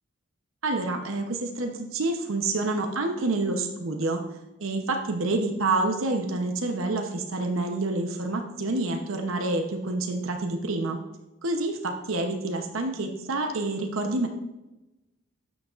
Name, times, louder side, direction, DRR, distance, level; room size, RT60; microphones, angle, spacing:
voice 1, 0.6-4.2 4.6-11.0 11.4-14.3, right 2 dB, 75° right, 3 dB, 0.9 m, -28 dB
11.5 x 6.3 x 2.5 m, 0.98 s
head